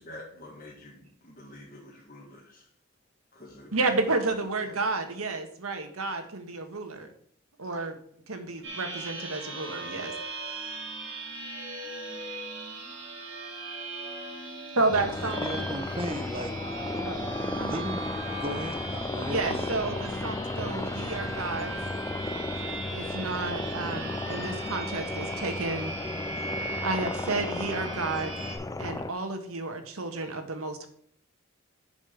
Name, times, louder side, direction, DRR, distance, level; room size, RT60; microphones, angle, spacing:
voice 1, 0.0-2.7 3.3-4.2 4.6-4.8, left 1 dB, 35° left, -4 dB, 2.0 m, -48 dB
voice 2, 3.7-7.1 7.6-8.0 8.3-10.1 14.8-15.4 17.0-17.2 17.6-17.8 19.3-21.7 22.9-25.9 26.8-28.3 28.8-30.9, right 3 dB, 80° right, 6 dB, 1.6 m, -31 dB
sound 1, 8.6-28.6, right 2 dB, 55° right, 4.0 m, -38 dB
sound 2, 14.9-29.1, left 2 dB, 15° left, 0.3 m, -34 dB
voice 3, 15.4-16.6 17.6-18.0 18.3-19.8 22.6-22.7, equal, 25° right, 5 dB, 1.1 m, -36 dB
9.4 x 5.5 x 6.6 m, 0.64 s
head